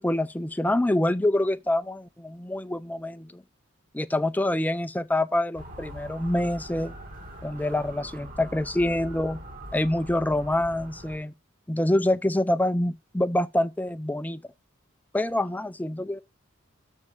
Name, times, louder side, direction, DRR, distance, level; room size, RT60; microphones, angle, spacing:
voice 1, 0.0-3.4 3.9-6.9 7.4-9.4 9.7-11.3 11.7-14.4 15.1-16.2, left 1 dB, 10° left, 0.4 m, -26 dB
Motor vehicle (road) / Siren, 5.6-11.2, equal, 45° right, 1.7 m, -42 dB
7.1 x 5.3 x 4.6 m
head